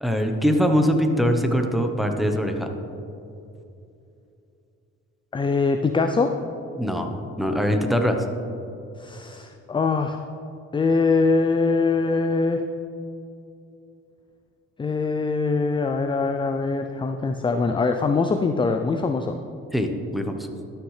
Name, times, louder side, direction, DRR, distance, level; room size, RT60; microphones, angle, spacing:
voice 1, 0.0-2.7 6.8-8.2 19.7-20.5, equal, ahead, 4 dB, 0.9 m, -22 dB
voice 2, 5.3-6.3 9.0-10.2 10.7-12.6 14.8-19.4, left 4 dB, 15° left, 6 dB, 0.4 m, -23 dB
12.5 x 6.4 x 3.3 m, 2.7 s
cardioid pair, 85°, 29 cm